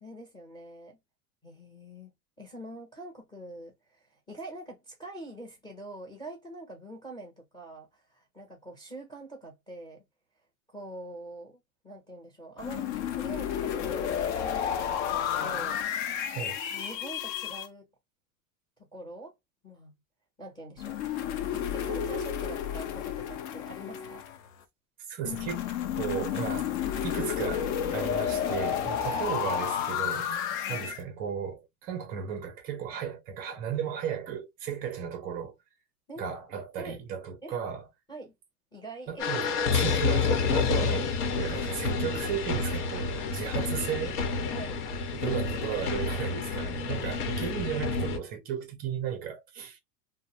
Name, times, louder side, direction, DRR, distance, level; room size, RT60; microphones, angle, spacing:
voice 1, 0.0-1.0 1.4-10.0 10.7-15.8 16.7-17.9 18.8-19.3 19.6-19.9 20.4-21.1 21.5-24.2 29.1-29.3 30.6-30.9 36.1-36.4 36.8-37.0 37.4-37.6 38.1-38.3 38.7-39.3 44.5-44.8, right 1 dB, 10° left, 0.7 m, -45 dB
sound 1, 12.6-17.7 20.8-24.6 25.3-31.0, left 9 dB, 50° left, 0.6 m, -31 dB
voice 2, 16.3-16.6 25.1-25.7 26.0-26.7 27.0-30.3 30.7-35.6 36.2-37.9 39.1-44.3 45.1-49.8, right 8 dB, 20° right, 0.5 m, -35 dB
sound 2, 39.2-48.2, left 5 dB, 90° left, 1.0 m, -29 dB
2.5 x 2.1 x 2.9 m
supercardioid pair, 165°, 44 cm